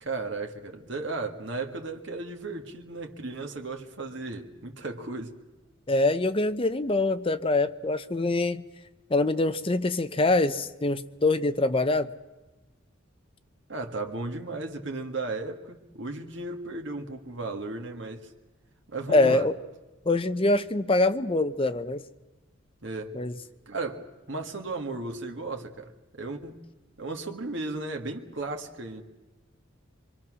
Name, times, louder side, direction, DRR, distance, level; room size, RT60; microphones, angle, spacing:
voice 1, 0.0-5.4 13.7-18.3 18.9-19.5 22.8-23.2 23.7-26.6 27.0-29.0, right 3 dB, 65° right, 1.9 m, -35 dB
voice 2, 5.9-8.6 9.1-12.1 19.1-19.5 20.1-22.0 23.1-23.4, left 2 dB, 25° left, 0.7 m, -24 dB
24.5 x 24.0 x 6.3 m
head